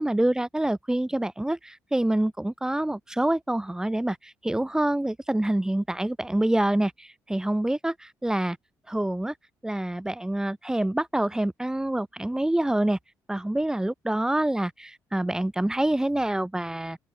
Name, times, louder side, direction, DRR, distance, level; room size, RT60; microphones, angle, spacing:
voice 1, 0.0-7.9 8.2-8.6 8.9-9.3 9.6-13.0 13.3-17.0, right 1 dB, 10° right, 1.0 m, -26 dB
open air
supercardioid pair, 70°, 8 cm